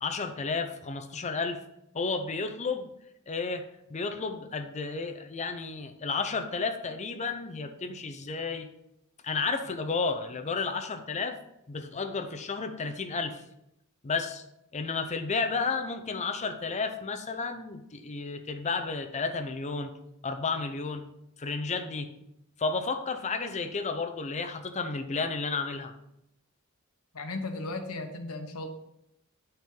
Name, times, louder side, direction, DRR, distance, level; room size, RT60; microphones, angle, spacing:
voice 1, 0.0-1.6 1.9-2.9 3.3-8.7 9.2-11.4 11.7-13.4 14.0-14.4 14.7-19.9 20.2-21.0 21.4-22.1 22.6-25.9, left 4 dB, 30° left, 7 dB, 0.6 m, -32 dB
voice 2, 27.1-28.7, left 2 dB, 85° left, 5 dB, 1.0 m, -36 dB
8.7 x 4.4 x 3.7 m, 0.82 s
head